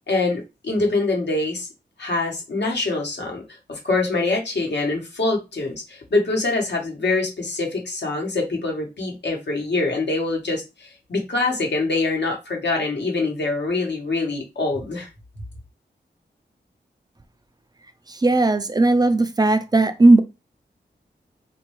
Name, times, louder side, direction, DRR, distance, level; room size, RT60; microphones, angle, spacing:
voice 1, 0.1-1.7 2.0-3.4 3.7-15.1, left 3 dB, 70° left, 1.2 m, -24 dB
voice 2, 18.2-20.2, right 2 dB, 20° right, 0.3 m, -16 dB
3.1 x 2.6 x 3.1 m
wide cardioid pair, 115°, 18 cm